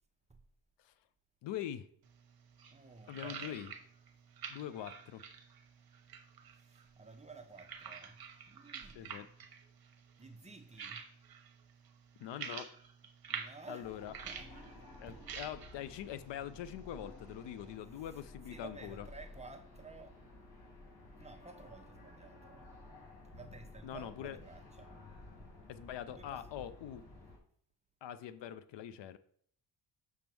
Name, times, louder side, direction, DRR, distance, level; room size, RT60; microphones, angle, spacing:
voice 1, 1.4-1.9 3.1-3.7 4.5-5.3 8.9-9.3 12.2-12.7 13.7-14.1 15.0-19.1 23.8-24.4 25.7-27.0 28.0-29.2, left 10 dB, 80° left, 0.6 m, -43 dB
sound 1, 2.0-17.8, right 7 dB, 55° right, 1.0 m, -50 dB
voice 2, 2.7-3.6 6.6-8.2 8.5-9.3 10.2-11.0 13.3-14.5 15.1-15.2 17.7-18.2 18.5-20.2 21.2-22.7 23.3-25.0 26.1-26.4, right 4 dB, 15° right, 0.8 m, -53 dB
sound 2, 13.8-27.4, left 2 dB, 65° left, 2.7 m, -54 dB
6.4 x 3.6 x 6.0 m
cardioid pair, 115°, 43 cm